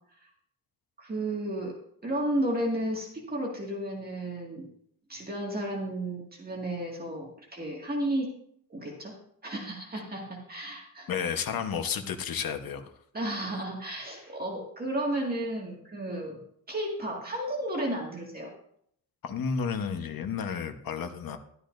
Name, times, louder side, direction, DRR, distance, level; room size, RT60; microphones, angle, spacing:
voice 1, 1.0-1.7 2.0-4.7 5.1-8.3 8.7-9.2 9.4-11.1 13.1-16.4 16.7-18.5, right 1 dB, 25° right, -1 dB, 2.0 m, -33 dB
voice 2, 11.1-12.9 19.2-21.4, left 6 dB, 65° left, 5 dB, 1.2 m, -32 dB
12.5 x 12.5 x 2.6 m, 0.68 s
wide cardioid pair, 155°, 37 cm